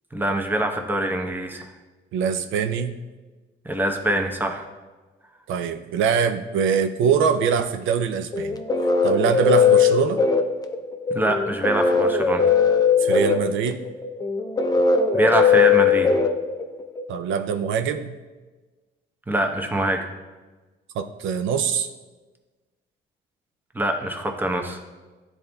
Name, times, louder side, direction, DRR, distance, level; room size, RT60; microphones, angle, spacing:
voice 1, 0.1-1.7 3.6-4.6 11.1-12.5 15.1-16.1 19.3-20.0 23.7-24.8, right 1 dB, 10° right, 3 dB, 0.8 m, -24 dB
voice 2, 2.1-3.0 5.5-8.6 9.0-10.2 13.0-13.8 17.1-18.1 21.0-21.9, right 7 dB, 80° right, 8 dB, 0.4 m, -23 dB
sound 1, 8.3-17.0, left 5 dB, 20° left, 0.5 m, -19 dB
10.5 x 4.1 x 2.2 m, 1.3 s
cardioid pair, 90°, 20 cm